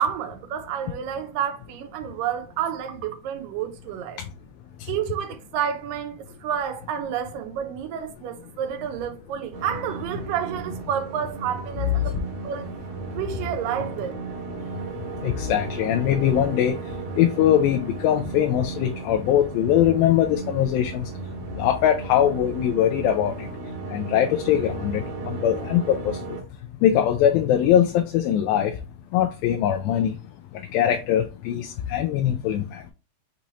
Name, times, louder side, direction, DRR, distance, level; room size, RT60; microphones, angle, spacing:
voice 1, 0.0-4.2 4.9-12.7 13.1-14.1, right 9 dB, 80° right, 2.2 m, -30 dB
sound 1, 9.5-26.4, right 4 dB, 65° right, 2.2 m, -35 dB
voice 2, 15.2-16.8 17.2-21.1 21.6-23.5 23.9-26.4 26.8-28.7 29.1-30.2 30.7-32.8, left 10 dB, 85° left, 2.4 m, -22 dB
6.1 x 2.9 x 2.7 m
omnidirectional pair, 4.1 m